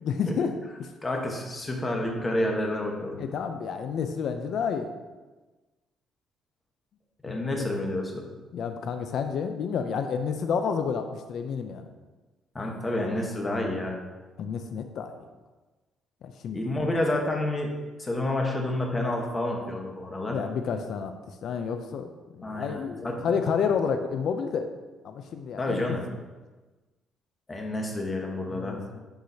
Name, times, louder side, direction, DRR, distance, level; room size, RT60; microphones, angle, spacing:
voice 1, 0.0-0.5 3.2-4.9 7.2-7.6 8.5-11.9 14.4-15.1 16.2-16.7 20.3-21.1 21.4-24.7 25.0-26.0 28.5-29.0, left 6 dB, 60° left, 7 dB, 0.5 m, -30 dB
voice 2, 1.0-3.2 7.2-8.2 12.5-14.0 16.5-17.7 18.0-20.4 22.4-23.2 25.6-26.0 27.5-28.8, left 1 dB, 20° left, 0 dB, 1.1 m, -29 dB
10.0 x 4.8 x 2.8 m, 1.2 s
cardioid pair, 140°, 0 cm